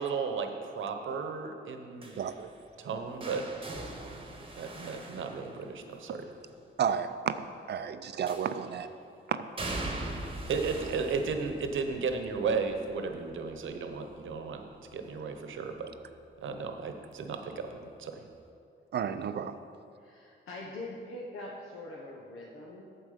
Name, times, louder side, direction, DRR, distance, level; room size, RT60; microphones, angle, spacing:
voice 1, 0.0-2.2 2.8-3.5 4.6-6.3 10.5-14.6 14.9-15.9 16.4-18.2, right 5 dB, 70° right, 6 dB, 1.0 m, -34 dB
sound 1, 2.0-6.1 8.3-8.9 9.6-15.4 15.7-16.1 17.4-17.5, right 2 dB, 25° right, 1.2 m, -42 dB
voice 2, 2.2-2.5 6.8-7.4 7.7-8.9 9.3-9.5 18.9-19.6, right 8 dB, 55° right, 11 dB, 0.5 m, -32 dB
voice 3, 20.0-22.8, left 2 dB, 80° left, -3 dB, 1.1 m, -43 dB
8.7 x 7.5 x 5.1 m, 2.5 s
cardioid pair, 85°, 21 cm